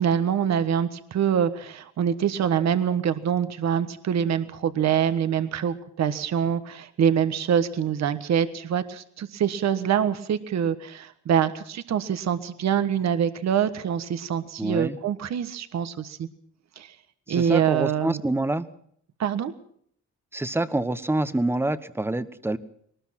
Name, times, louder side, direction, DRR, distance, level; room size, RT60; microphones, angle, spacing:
voice 1, 0.0-16.3 16.8-16.9 17.3-18.2 19.2-19.5, right 8 dB, 65° right, 11 dB, 1.5 m, -25 dB
voice 2, 14.6-15.0 17.3-18.7 20.3-22.6, right 2 dB, 10° right, 13 dB, 1.1 m, -26 dB
22.5 x 19.5 x 6.0 m, 0.64 s
wide cardioid pair, 160°, 30 cm